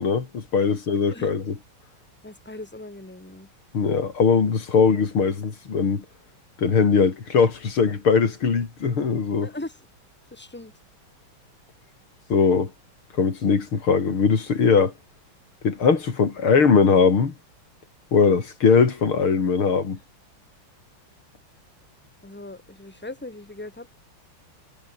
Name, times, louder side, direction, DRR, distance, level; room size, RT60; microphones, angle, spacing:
voice 1, 0.0-1.6 3.7-6.1 6.6-9.5 12.3-12.7 13.2-14.9 15.6-17.3 18.1-20.0, left 5 dB, 90° left, 4.0 m, -20 dB
voice 2, 2.2-3.5 9.4-9.8 10.3-10.7 22.2-23.9, left 2 dB, 5° left, 3.0 m, -39 dB
omnidirectional pair, 2.3 m